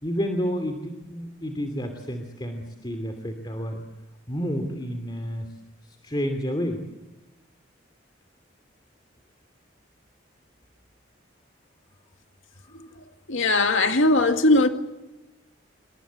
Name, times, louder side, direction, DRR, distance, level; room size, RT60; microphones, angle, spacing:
voice 1, 0.0-3.8 4.3-5.5 5.8-6.8 12.6-13.0, equal, 25° left, 2.8 m, -30 dB
voice 2, 13.3-14.7, left 2 dB, 85° left, 2.1 m, -19 dB
27.0 x 24.0 x 8.3 m
head